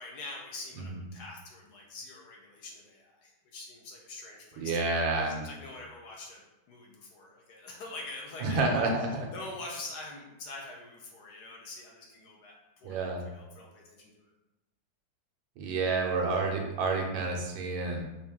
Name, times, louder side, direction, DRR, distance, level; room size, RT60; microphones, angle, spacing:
voice 1, 0.0-4.7 5.3-6.4 6.7-8.9 9.3-14.3, left 2 dB, 65° left, -1 dB, 1.2 m, -45 dB
voice 2, 4.6-5.4 8.4-9.3 12.8-13.2 15.6-18.0, right 3 dB, 85° right, 0 dB, 1.5 m, -29 dB
4.4 x 2.6 x 3.5 m, 0.96 s
omnidirectional pair, 2.0 m